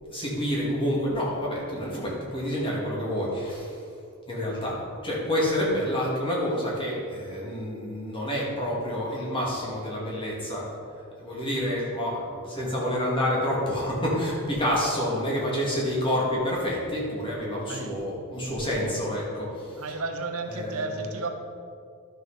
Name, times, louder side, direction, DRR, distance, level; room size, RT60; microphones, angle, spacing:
voice 1, 0.1-3.8 4.3-4.8 5.0-10.7 11.2-20.0 20.4-21.3, equal, 25° left, -5 dB, 2.4 m, -28 dB
voice 2, 19.8-21.3, right 3 dB, 70° right, 5 dB, 0.9 m, -32 dB
11.5 x 6.2 x 5.0 m, 2.3 s
head